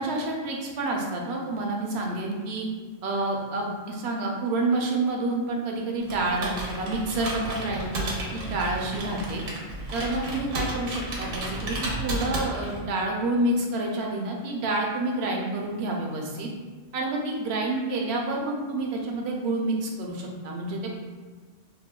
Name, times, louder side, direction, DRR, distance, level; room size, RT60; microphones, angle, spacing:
voice 1, 0.0-2.7 3.0-9.4 9.9-16.5 16.9-20.9, right 2 dB, 65° right, 0 dB, 0.8 m, -28 dB
Computer keyboard, 6.0-12.9, right 1 dB, 90° right, 1.1 m, -33 dB
4.2 x 2.2 x 2.2 m, 1.4 s
omnidirectional pair, 1.3 m